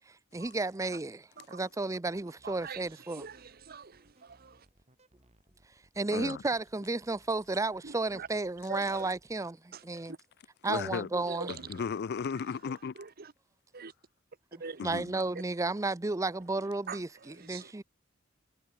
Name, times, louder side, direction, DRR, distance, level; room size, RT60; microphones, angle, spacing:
voice 1, 0.3-1.2 1.5-3.3 6.0-10.1 10.6-11.5 14.8-17.1 17.4-17.8, right 2 dB, 15° right, 0.5 m, -32 dB
voice 2, 1.4-1.7 2.4-4.7 7.8-8.3 8.7-9.1 9.7-10.2 11.3-11.9 12.9-13.3 13.7-13.9 14.6-14.8 16.9-17.7, right 5 dB, 50° right, 1.1 m, -44 dB
sound 1, 2.1-9.4, right 1 dB, 35° right, 4.3 m, -65 dB
voice 3, 6.1-6.4 10.7-11.1 11.7-12.9 14.8-15.1, left 6 dB, 55° left, 0.4 m, -34 dB
head